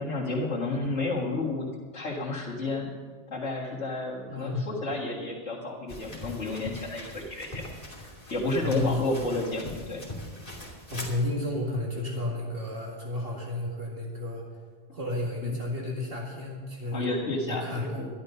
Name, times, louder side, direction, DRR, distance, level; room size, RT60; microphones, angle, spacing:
voice 1, 0.0-2.9 3.3-7.7 7.9-10.1 15.4-15.6 16.9-18.1, left 2 dB, 90° left, -8 dB, 2.2 m, -31 dB
voice 2, 4.3-4.7 8.6-9.0 10.9-14.4 14.9-17.1 17.5-18.1, left 1 dB, 55° right, -2 dB, 2.2 m, -32 dB
sound 1, 5.9-11.2, left 1 dB, 35° left, 3.0 m, -41 dB
12.5 x 11.5 x 5.5 m, 1.5 s
omnidirectional pair, 1.1 m